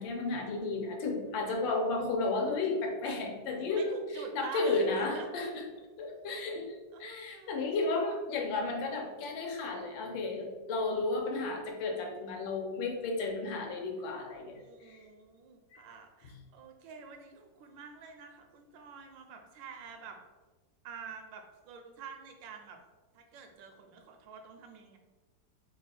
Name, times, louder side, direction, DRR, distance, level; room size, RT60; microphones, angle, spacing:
voice 1, 0.0-3.9 4.3-5.6 6.0-15.0 15.7-15.8, left 3 dB, 85° left, 1 dB, 1.4 m, -33 dB
voice 2, 3.7-5.3 6.9-7.6 14.6-20.2 20.8-22.8 23.1-25.0, right 5 dB, 80° right, 4 dB, 1.3 m, -47 dB
3.6 x 2.3 x 4.1 m, 1.3 s
omnidirectional pair, 2.0 m